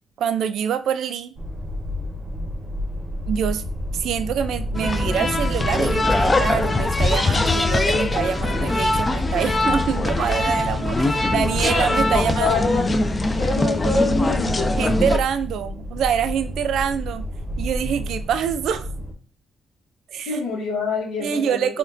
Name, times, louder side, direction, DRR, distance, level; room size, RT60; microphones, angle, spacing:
voice 1, 0.2-1.4 3.3-3.6 3.9-12.5 14.8-17.3 17.6-18.9 20.1-20.4 21.2-21.8, right 8 dB, 75° right, 0.3 m, -25 dB
sound 1, 1.4-19.1, equal, 35° right, 0.7 m, -30 dB
sound 2, 4.7-15.2, left 2 dB, 25° left, 0.3 m, -22 dB
voice 2, 12.4-13.0 13.4-14.7 20.3-21.8, left 3 dB, 85° left, 0.9 m, -25 dB
4.2 x 2.2 x 2.5 m
cardioid pair, 90°, 0 cm